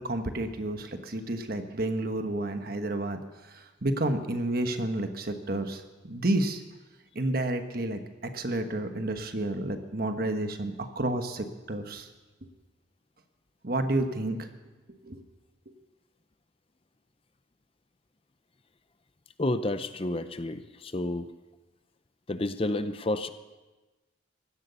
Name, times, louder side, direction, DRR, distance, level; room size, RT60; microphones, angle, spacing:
voice 1, 0.0-6.6 7.1-12.1 13.6-14.5 15.0-15.2, right 1 dB, 50° right, 7 dB, 1.3 m, -30 dB
voice 2, 19.4-21.3 22.3-23.3, left 2 dB, 30° left, 11 dB, 0.6 m, -30 dB
16.5 x 12.0 x 6.9 m, 1.2 s
head